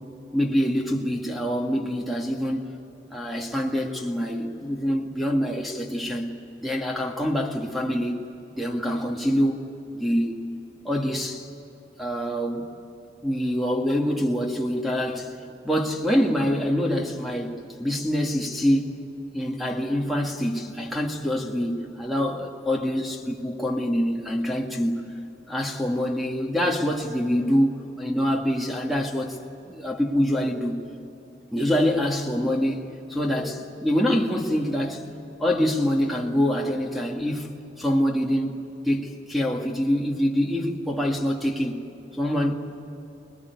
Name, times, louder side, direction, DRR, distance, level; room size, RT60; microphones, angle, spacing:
voice 1, 0.3-2.7 3.1-6.3 6.6-8.3 8.6-9.6 9.9-10.4 10.8-11.5 12.0-12.7 13.2-15.3 15.6-19.0 19.3-25.1 25.5-29.4 29.7-30.8 31.5-32.8 33.1-35.0 35.4-38.6 38.8-41.8 42.1-42.5, equal, ahead, 2.0 m, -25 dB
26.0 x 21.0 x 9.5 m
head